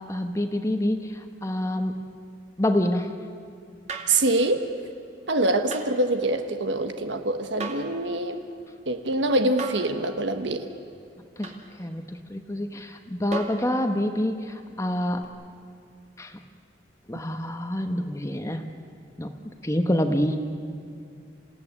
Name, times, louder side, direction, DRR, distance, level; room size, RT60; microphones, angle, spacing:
voice 1, 0.1-1.9 2.6-3.1 11.4-11.5 11.8-15.3 16.2-16.3 17.1-18.6 19.2-19.3 19.6-20.4, left 1 dB, 15° left, 6 dB, 1.1 m, -27 dB
sound 1, 3.9-4.2 5.7-5.9 7.6-8.0 9.6-9.9 11.4-11.6 13.3-13.7 15.2-15.3, right 3 dB, 40° right, 2.5 m, -34 dB
voice 2, 4.1-4.7 5.3-8.4 8.9-10.7, right 2 dB, 90° right, 7 dB, 1.4 m, -24 dB
28.0 x 16.5 x 9.9 m, 2.5 s
head